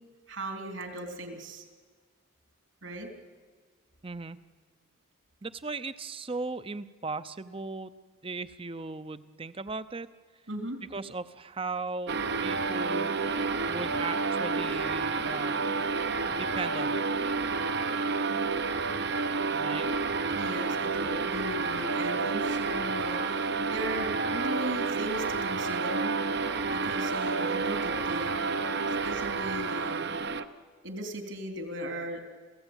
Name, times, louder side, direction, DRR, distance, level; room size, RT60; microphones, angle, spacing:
voice 1, 0.3-1.6 2.8-3.1 10.5-10.8 20.3-30.2 30.8-32.2, right 1 dB, 75° right, 4 dB, 3.6 m, -38 dB
voice 2, 4.0-4.4 5.4-7.9 8.2-10.1 10.9-13.2 13.7-15.7 16.3-17.0 19.5-19.9, right 3 dB, 25° right, 13 dB, 0.7 m, -37 dB
sound 1, 12.1-30.4, right 4 dB, 55° right, 0.9 m, -30 dB
29.0 x 16.0 x 9.0 m, 1.5 s
head